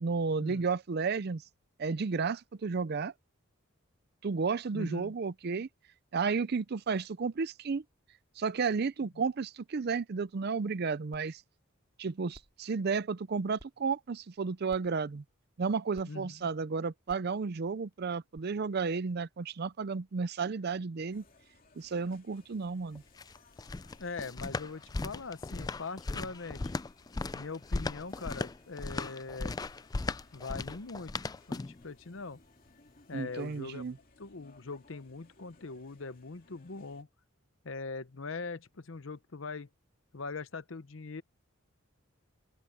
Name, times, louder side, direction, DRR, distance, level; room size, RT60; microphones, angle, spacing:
voice 1, 0.0-1.4 1.8-3.1 4.2-5.7 6.1-7.8 8.4-11.4 12.0-15.2 15.6-21.2 21.8-23.0 33.1-33.9, right 5 dB, 50° right, 0.5 m, -32 dB
voice 2, 4.7-5.1 16.1-16.5 24.0-26.7 27.3-29.6 30.3-31.1 31.5-32.4 33.1-33.8 34.2-37.1 37.6-39.7 40.1-41.2, left 4 dB, 65° left, 0.9 m, -41 dB
sound 1, 11.1-11.2 11.7-11.8 12.3-12.6 13.6-13.7 14.7-15.0 15.9-16.0 17.1-17.3 18.3-18.4, right 1 dB, 30° right, 2.2 m, -54 dB
sound 2, 21.1-37.0, left 3 dB, 45° left, 2.7 m, -63 dB
sound 3, 23.0-31.8, left 3 dB, 20° left, 0.3 m, -37 dB
open air
head